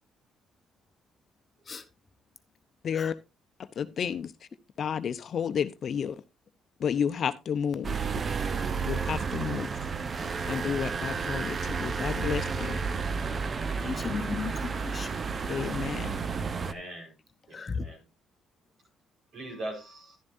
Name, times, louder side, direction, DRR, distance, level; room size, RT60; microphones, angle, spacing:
voice 1, 2.8-3.1 3.8-4.3 4.8-6.2 6.8-8.0 8.9-9.7 10.5-12.8 15.5-16.2, left 7 dB, 55° left, 0.7 m, -31 dB
sound 1, 7.8-16.7, right 5 dB, 40° right, 0.7 m, -31 dB
voice 2, 13.8-15.4 17.5-17.8, left 5 dB, 35° left, 1.0 m, -36 dB
voice 3, 16.3-17.1 17.5-18.0 19.3-20.2, right 1 dB, 65° right, 4.6 m, -41 dB
11.5 x 10.5 x 2.6 m
cardioid pair, 85°, 0 cm